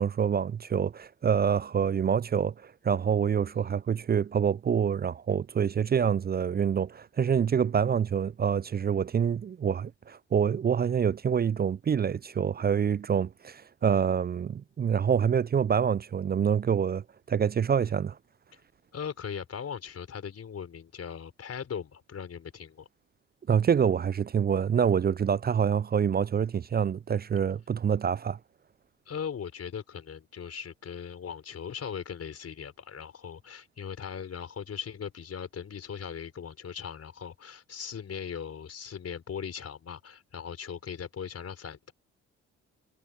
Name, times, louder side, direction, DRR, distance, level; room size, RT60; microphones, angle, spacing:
voice 1, 0.0-18.2 23.5-28.4, right 7 dB, 25° right, 0.6 m, -26 dB
voice 2, 18.9-22.9 29.1-41.9, left 7 dB, 45° left, 5.0 m, -39 dB
figure-of-eight pair, 45°, 35 cm